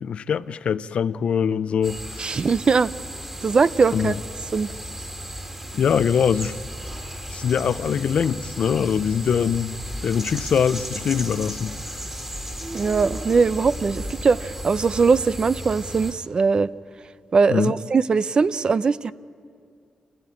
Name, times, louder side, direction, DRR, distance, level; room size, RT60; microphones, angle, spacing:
voice 1, 0.0-2.4 3.9-4.2 5.7-6.6 7.3-11.8 17.5-17.7, left 7 dB, 70° left, 0.5 m, -23 dB
sound 1, 1.8-16.1, right 1 dB, 20° right, 2.5 m, -35 dB
voice 2, 2.2-2.9 3.4-4.1 4.5-4.7 12.7-16.7 17.3-19.1, right 5 dB, 45° right, 0.5 m, -20 dB
26.5 x 15.5 x 8.7 m
cardioid pair, 85°, 2 cm